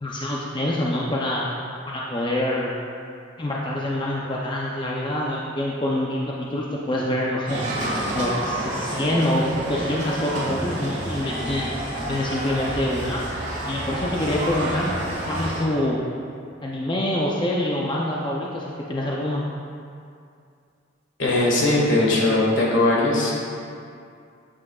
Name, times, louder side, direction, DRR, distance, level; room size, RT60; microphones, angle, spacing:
voice 1, 0.0-1.5 1.9-2.7 3.4-7.6 8.1-11.7 12.0-13.2 13.7-14.9 15.3-16.0 16.6-19.4, left 1 dB, 25° left, -4 dB, 0.5 m, -26 dB
sound 1, 7.5-15.6, right 1 dB, 40° right, 1.7 m, -29 dB
voice 2, 21.2-23.6, left 2 dB, 70° left, -4 dB, 1.7 m, -20 dB
8.5 x 7.5 x 2.4 m, 2.4 s
head